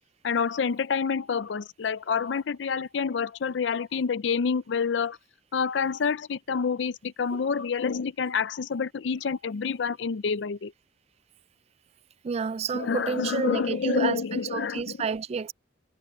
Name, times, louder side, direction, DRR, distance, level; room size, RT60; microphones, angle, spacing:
voice 1, 0.2-5.2 5.5-10.7 12.7-15.1, left 6 dB, 65° left, 0.4 m, -28 dB
voice 2, 12.2-15.5, right 5 dB, 35° right, 0.3 m, -30 dB
head